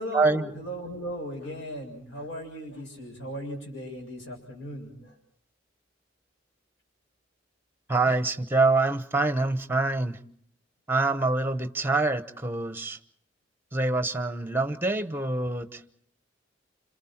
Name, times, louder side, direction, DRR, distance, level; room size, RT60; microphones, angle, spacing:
voice 1, 0.0-5.2, equal, 75° left, 7.1 m, -37 dB
voice 2, 7.9-10.2 10.9-13.0 13.7-15.8, right 3 dB, 10° right, 1.0 m, -25 dB
30.0 x 27.5 x 4.4 m
head